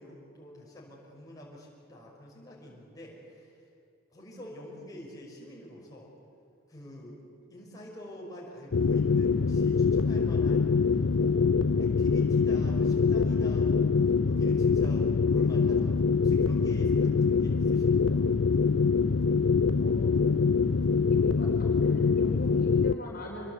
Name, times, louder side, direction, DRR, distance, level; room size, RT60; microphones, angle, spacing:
voice 1, 0.0-3.6 4.1-6.1 6.7-7.2 7.5-18.2, equal, 15° left, -4 dB, 5.5 m, -47 dB
sound 1, 8.7-22.9, left 5 dB, 65° left, 0.6 m, -24 dB
voice 2, 19.8-20.2 21.0-21.5 21.8-23.5, left 1 dB, 45° left, -2 dB, 4.6 m, -41 dB
26.0 x 22.0 x 8.2 m, 2.5 s
head